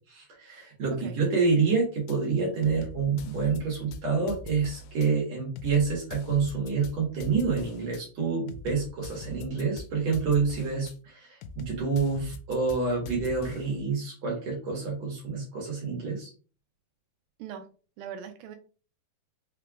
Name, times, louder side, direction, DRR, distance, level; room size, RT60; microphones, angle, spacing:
voice 1, 0.1-16.3, right 5 dB, 55° right, -3 dB, 2.3 m, -28 dB
sound 1, 2.1-2.2 2.6-5.1 5.6-8.0 8.5-10.9 11.4-13.8, left 3 dB, 85° left, 2.5 m, -43 dB
voice 2, 18.0-18.6, right 8 dB, 80° right, 6 dB, 2.2 m, -40 dB
5.9 x 3.3 x 2.4 m, 0.37 s
omnidirectional pair, 4.5 m